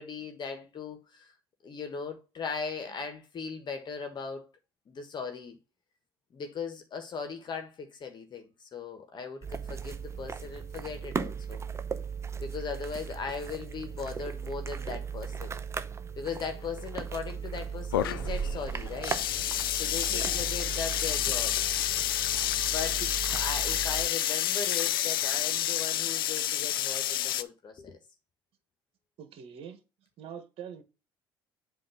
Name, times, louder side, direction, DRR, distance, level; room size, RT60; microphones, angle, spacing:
voice 1, 0.0-1.3 1.6-4.5 4.9-5.6 6.3-11.6 12.4-15.5 16.2-19.2 19.7-21.6 22.6-23.0 23.3-28.0, left 5 dB, 40° left, 1.4 m, -38 dB
sound 1, 9.4-24.1, right 6 dB, 25° right, 0.6 m, -37 dB
sound 2, 17.9-27.4, left 12 dB, 85° left, 0.4 m, -29 dB
voice 2, 20.1-20.5 23.0-23.1 29.2-29.8 30.2-30.8, right 8 dB, 55° right, 1.4 m, -43 dB
7.7 x 2.9 x 5.7 m
hypercardioid pair, 65°, 11 cm